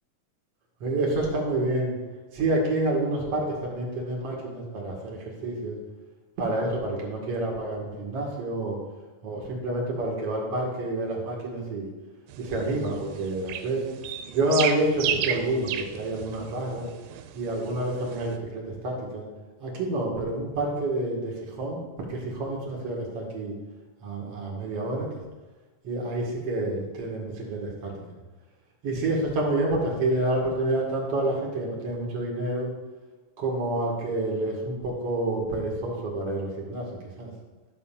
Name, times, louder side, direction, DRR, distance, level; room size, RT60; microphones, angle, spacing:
voice 1, 0.8-2.0 2.3-5.8 6.4-8.8 9.2-11.9 12.4-13.8 14.3-16.9 17.3-19.2 19.6-21.8 22.1-23.5 24.0-25.1 25.8-27.9 28.8-32.7 33.4-36.9 37.2-37.3, right 2 dB, 45° right, -1 dB, 2.2 m, -28 dB
sound 1, 12.3-18.4, right 10 dB, 85° right, 2.8 m, -34 dB
12.5 x 4.2 x 7.1 m, 1.2 s
omnidirectional pair, 4.9 m